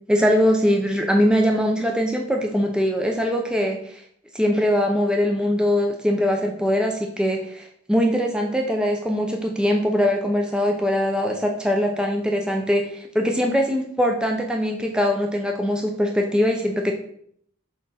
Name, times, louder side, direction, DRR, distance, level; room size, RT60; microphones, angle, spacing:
voice 1, 0.1-4.0 4.3-16.9, equal, 5° right, 1 dB, 0.6 m, -22 dB
6.4 x 3.5 x 5.6 m, 0.65 s
head